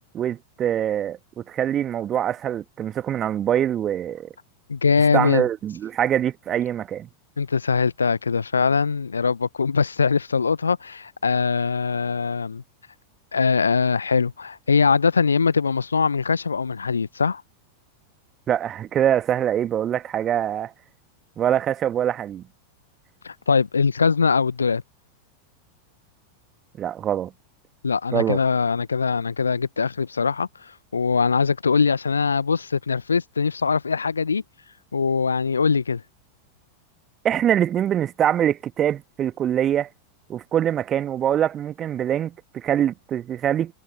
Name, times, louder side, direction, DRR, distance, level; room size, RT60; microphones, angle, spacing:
voice 1, 0.1-4.3 5.1-7.1 18.5-20.7 21.4-22.4 26.8-27.3 28.1-28.4 37.2-39.9 40.3-43.7, right 10 dB, 25° right, 1.6 m, -24 dB
voice 2, 4.7-5.5 7.4-12.6 13.3-17.4 23.2-24.8 27.8-30.5 30.9-34.4 34.9-36.0, left 5 dB, 75° left, 0.9 m, -22 dB
figure-of-eight pair, 90°, 0 cm